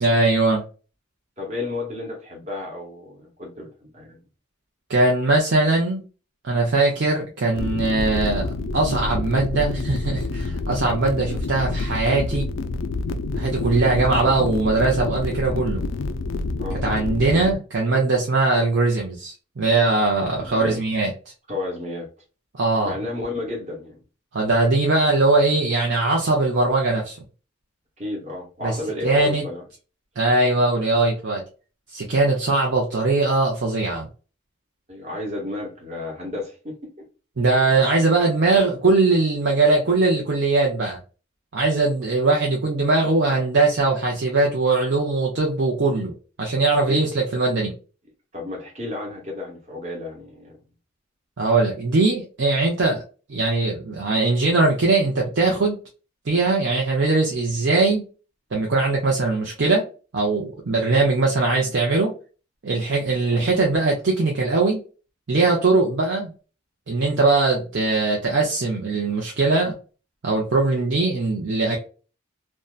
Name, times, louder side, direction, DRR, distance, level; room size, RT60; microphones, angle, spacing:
voice 1, 0.0-0.6 4.9-6.0 6.4-8.5 8.7-12.5 13.3-15.8 16.8-21.1 22.5-22.9 24.3-27.2 28.6-28.8 29.0-29.4 30.2-31.4 31.9-34.1 37.4-41.0 41.5-46.1 46.4-47.7 51.4-53.0 53.3-55.8 56.3-58.0 58.5-59.9 60.1-62.1 62.6-64.8 65.3-66.3 66.9-69.7 70.2-71.8, right 3 dB, 60° right, 0.6 m, -20 dB
voice 2, 1.4-4.2 16.6-16.8 20.4-20.8 21.5-22.1 22.8-24.0 28.0-29.6 34.9-37.0 37.7-37.8 42.0-42.2 46.8-47.1 48.3-50.6 63.3-63.5, left 2 dB, 35° right, 1.0 m, -32 dB
sound 1, 7.6-17.5, left 3 dB, 70° left, 0.3 m, -28 dB
2.6 x 2.2 x 2.3 m
head